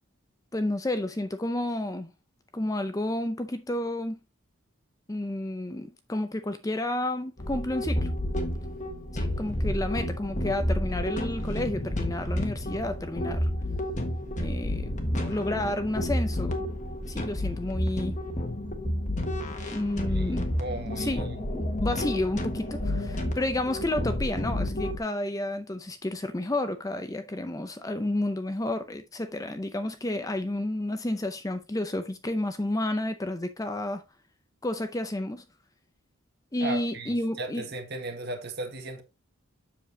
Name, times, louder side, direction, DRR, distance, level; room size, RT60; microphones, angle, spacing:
voice 1, 0.5-2.1 2.5-4.2 5.1-8.1 9.1-13.5 14.4-16.6 17.1-18.2 19.7-20.6 21.0-21.3 21.5-34.0 34.6-35.5 36.5-37.6, left 1 dB, 15° left, 0.5 m, -31 dB
sound 1, 7.4-25.0, left 1 dB, 35° left, 1.4 m, -30 dB
voice 2, 20.0-21.4 36.6-39.0, right 2 dB, 50° right, 1.6 m, -36 dB
7.5 x 7.0 x 2.8 m
head